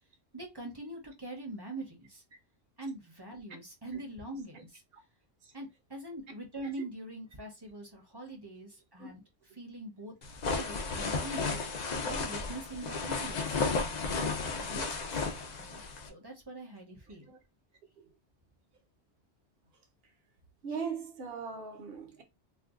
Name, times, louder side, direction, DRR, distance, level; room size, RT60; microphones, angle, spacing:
voice 1, 0.3-2.2 2.8-4.8 5.5-9.2 9.6-10.1 10.4-11.6 12.1-13.6 14.0-15.8 16.1-17.3, right 1 dB, 25° right, 0.7 m, -43 dB
sound 1, 10.2-16.1, left 4 dB, 50° left, 0.5 m, -33 dB
voice 2, 20.6-22.2, right 5 dB, 60° right, 0.9 m, -39 dB
2.5 x 2.2 x 3.5 m
omnidirectional pair, 1.2 m